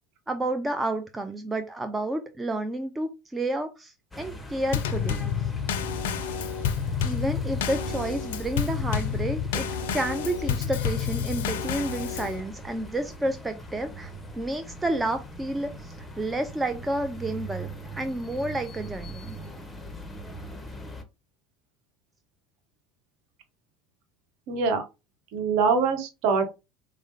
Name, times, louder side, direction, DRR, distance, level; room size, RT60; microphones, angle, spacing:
voice 1, 0.3-5.5 7.0-9.7 9.9-14.1 14.4-19.4, right 1 dB, 15° right, 7 dB, 0.4 m, -30 dB
sound 1, 4.1-21.0, right 1 dB, 10° left, 0.8 m, -41 dB
Drum kit / Snare drum / Bass drum, 4.7-12.4, left 7 dB, 65° left, 0.4 m, -29 dB
voice 2, 24.5-24.8 25.3-26.5, right 5 dB, 55° right, 5 dB, 1.0 m, -23 dB
4.7 x 2.0 x 2.7 m, 0.26 s
figure-of-eight pair, 70°, 0 cm